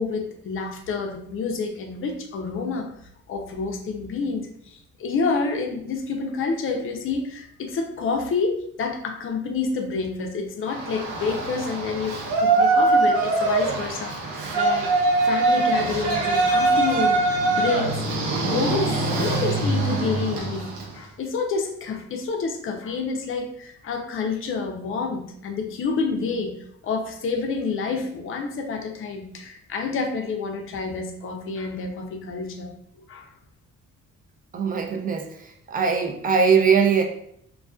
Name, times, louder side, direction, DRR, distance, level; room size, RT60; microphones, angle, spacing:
voice 1, 0.0-2.9 3.3-14.9 15.2-18.0 18.3-32.7 33.1-33.3, left 4 dB, 45° left, 3 dB, 0.5 m, -28 dB
Yell, 10.7-20.9, right 3 dB, 80° right, 0.7 m, -22 dB
voice 2, 34.5-35.3 35.7-37.0, right 6 dB, 30° right, 4 dB, 0.4 m, -20 dB
2.4 x 2.2 x 2.3 m, 0.68 s
cardioid pair, 90°, 30 cm